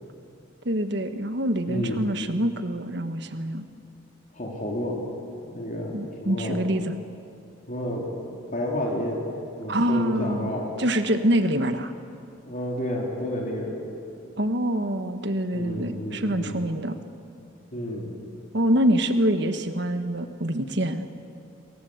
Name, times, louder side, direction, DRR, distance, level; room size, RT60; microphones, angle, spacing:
voice 1, 0.6-3.7 5.9-6.9 9.7-10.5 10.8-11.9 14.4-17.0 18.5-21.0, equal, 55° right, 8 dB, 1.6 m, -25 dB
voice 2, 1.7-2.0 4.3-5.0 5.5-6.6 7.7-8.1 8.5-9.2 9.6-10.7 12.4-13.8 15.5-16.6 17.7-18.1, left 1 dB, 40° left, -2 dB, 3.9 m, -30 dB
29.5 x 22.0 x 8.1 m, 2.5 s
head